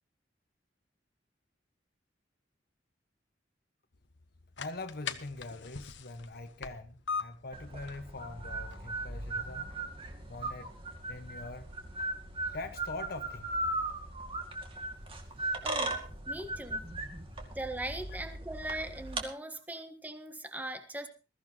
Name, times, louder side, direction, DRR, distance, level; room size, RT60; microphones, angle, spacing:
sound 1, 3.9-15.7, left 6 dB, 85° left, 1.2 m, -46 dB
voice 1, 4.6-9.7 10.3-10.7 11.1-11.7 12.4-13.6, left 2 dB, 55° left, 1.4 m, -43 dB
sound 2, 7.5-19.2, right 2 dB, 30° right, 2.3 m, -38 dB
voice 2, 15.6-16.9 17.5-21.1, right 1 dB, 10° right, 1.4 m, -40 dB
21.0 x 14.5 x 3.0 m
head